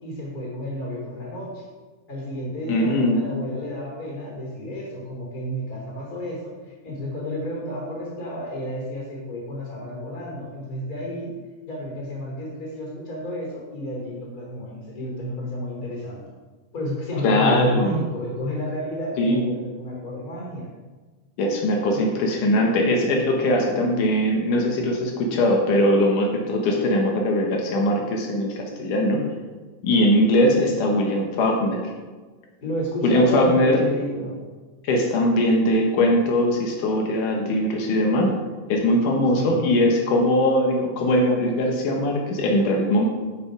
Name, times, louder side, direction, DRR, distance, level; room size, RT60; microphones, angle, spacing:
voice 1, 0.0-1.6 2.1-11.3 11.7-16.2 16.7-20.7 21.9-22.1 32.6-34.4 39.3-39.5, equal, 30° left, -2 dB, 3.4 m, -31 dB
voice 2, 2.7-3.2 17.2-18.0 19.2-19.5 21.4-29.2 29.8-31.8 33.0-33.9 34.8-38.3 38.7-43.1, left 1 dB, 85° left, 0 dB, 2.8 m, -21 dB
12.0 x 5.7 x 5.0 m, 1.3 s
omnidirectional pair, 3.6 m